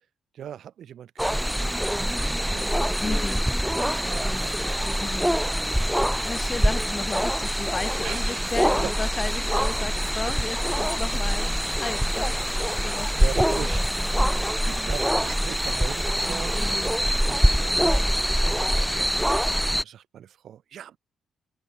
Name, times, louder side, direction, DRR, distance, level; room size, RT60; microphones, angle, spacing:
voice 1, 0.3-3.0 3.8-5.1 5.5-6.5 8.0-8.5 8.8-8.9 9.8-10.4 12.7-13.9 14.6-21.0, right 10 dB, 60° right, 6.3 m, -40 dB
sound 1, 1.2-19.8, equal, ahead, 0.5 m, -24 dB
voice 2, 3.0-3.5 5.0-5.4 6.2-13.1 13.5-13.8 14.1-14.9 16.6-17.0 17.7-18.0, left 4 dB, 25° left, 1.9 m, -35 dB
cardioid pair, 155°, 0 cm